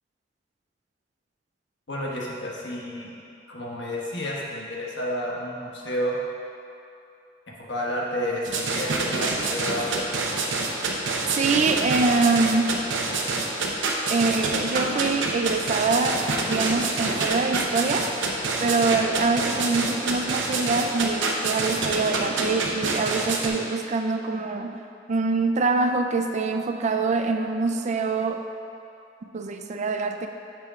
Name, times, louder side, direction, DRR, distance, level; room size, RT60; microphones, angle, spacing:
voice 1, 1.9-3.1 3.5-6.2 7.7-10.1 13.7-13.9, equal, 70° left, -4 dB, 1.3 m, -30 dB
sound 1, 8.4-23.5, right 3 dB, 80° right, 0.8 m, -26 dB
voice 2, 11.3-12.7 14.1-16.2 16.5-18.1 18.6-24.8 25.1-28.4 29.3-30.3, right 3 dB, 40° right, 5 dB, 0.4 m, -24 dB
7.5 x 3.6 x 5.5 m, 2.6 s
head